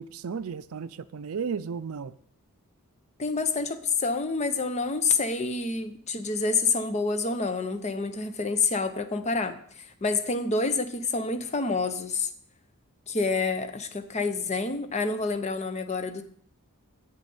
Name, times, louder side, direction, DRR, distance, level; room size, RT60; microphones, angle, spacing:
voice 1, 0.0-2.1, right 6 dB, 65° right, 0.4 m, -34 dB
voice 2, 3.2-9.6 10.0-12.3 13.1-16.2, left 4 dB, 30° left, 0.7 m, -28 dB
8.1 x 7.5 x 5.4 m
head